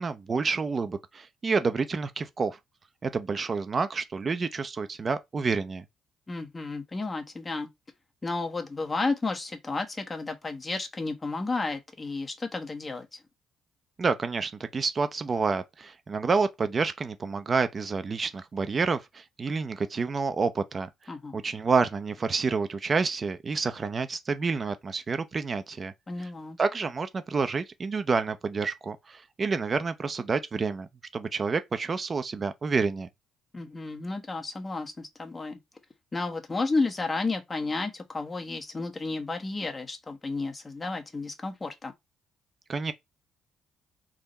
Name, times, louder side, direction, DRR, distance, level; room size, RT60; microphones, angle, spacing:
voice 1, 0.0-2.6 3.0-5.8 14.0-25.9 26.6-33.1 42.7-42.9, right 4 dB, 40° right, 0.5 m, -29 dB
voice 2, 6.3-7.7 8.2-13.2 21.1-21.4 26.1-26.6 33.5-35.6 36.1-41.9, left 3 dB, 25° left, 1.0 m, -32 dB
3.6 x 2.1 x 3.9 m
supercardioid pair, 60°, 0 cm